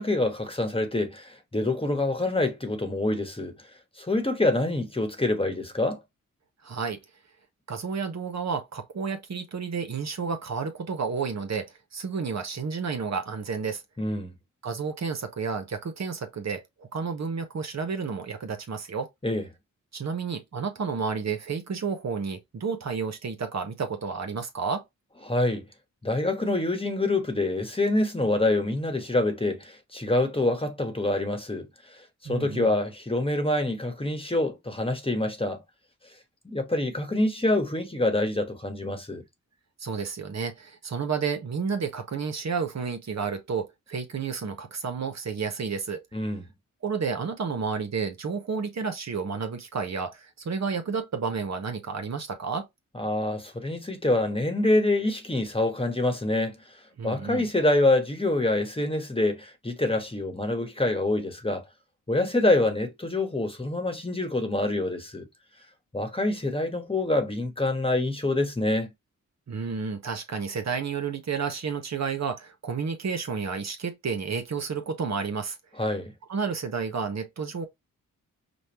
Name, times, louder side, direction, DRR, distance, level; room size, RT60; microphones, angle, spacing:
voice 1, 0.0-3.5 4.0-6.0 14.0-14.3 19.2-19.4 25.2-25.6 26.0-31.7 32.2-35.6 36.4-39.2 46.1-46.5 52.9-56.6 57.0-61.6 62.1-65.3 65.9-68.9 75.8-76.1, left 2 dB, 15° left, 1.2 m, -26 dB
voice 2, 6.6-7.0 7.7-13.8 14.6-19.1 19.9-24.8 32.2-32.7 39.8-46.0 46.8-52.7 57.0-57.5 69.5-75.6 76.3-77.7, right 5 dB, 55° right, 1.0 m, -31 dB
5.1 x 2.3 x 3.0 m
cardioid pair, 55°, 32 cm